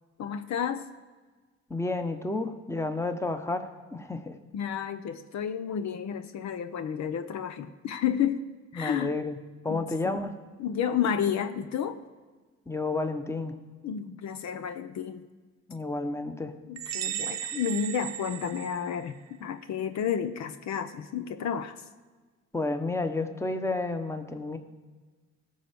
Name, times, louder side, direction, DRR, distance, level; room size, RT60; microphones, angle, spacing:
voice 1, 0.2-0.9 4.5-8.4 8.7-9.1 9.7-10.3 10.6-12.0 13.8-15.2 16.7-21.8, left 8 dB, 65° left, 10 dB, 0.8 m, -31 dB
voice 2, 1.7-4.4 8.7-9.4 9.6-10.3 12.7-13.6 15.7-16.6 22.5-24.6, left 2 dB, 10° left, 8 dB, 1.0 m, -31 dB
sound 1, 16.8-19.3, right 10 dB, 60° right, 0.9 m, -36 dB
17.5 x 6.4 x 5.2 m, 1.4 s
cardioid pair, 90°, 30 cm